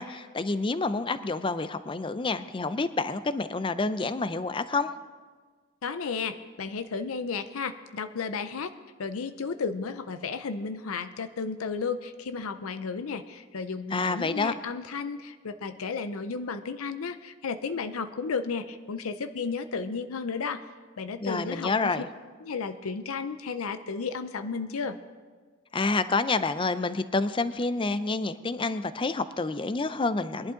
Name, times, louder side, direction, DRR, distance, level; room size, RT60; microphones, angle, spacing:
voice 1, 0.0-4.9 13.9-14.5 21.2-22.1 25.7-30.5, left 3 dB, 25° left, 13 dB, 0.5 m, -28 dB
voice 2, 5.8-8.7 9.0-20.6 21.0-21.9 22.4-25.0, left 5 dB, 90° left, 10 dB, 0.6 m, -33 dB
21.0 x 11.5 x 3.8 m, 1.5 s
head